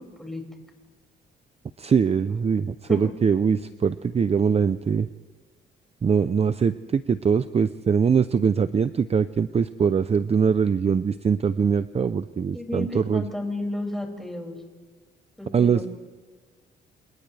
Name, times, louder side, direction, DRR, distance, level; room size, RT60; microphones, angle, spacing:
voice 1, 1.8-5.1 6.0-13.2 15.5-15.9, right 6 dB, 30° right, 13 dB, 0.6 m, -22 dB
voice 2, 12.5-14.6 15.4-15.9, left 1 dB, ahead, 1 dB, 6.1 m, -32 dB
29.5 x 27.5 x 3.4 m, 1.4 s
cardioid pair, 90°, 20 cm